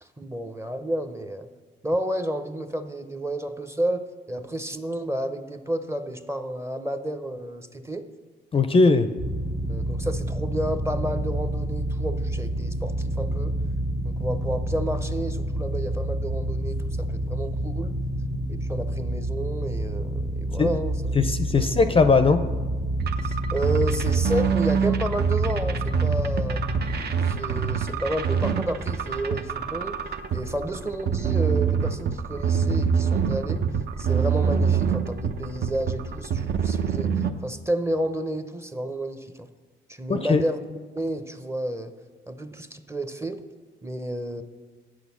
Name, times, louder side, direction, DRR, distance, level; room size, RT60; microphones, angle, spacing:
voice 1, 0.0-1.5 1.8-8.1 9.7-13.5 14.0-18.0 18.5-21.2 21.6-21.9 23.2-26.6 27.2-30.0 30.3-33.7 34.0-39.5 39.9-41.9 42.3-43.4 43.8-44.4, right 1 dB, 15° right, 9 dB, 0.7 m, -31 dB
voice 2, 8.5-9.1 20.6-20.8 21.2-22.4 40.1-40.4, left 4 dB, 30° left, 10 dB, 0.5 m, -19 dB
sound 1, 9.2-26.9, right 1 dB, 90° right, 2.5 m, -28 dB
sound 2, 23.0-37.3, right 6 dB, 55° right, 0.7 m, -25 dB
sound 3, 27.0-29.2, right 5 dB, 30° right, 1.2 m, -44 dB
8.6 x 6.3 x 7.0 m, 1.5 s
cardioid pair, 90°, 20 cm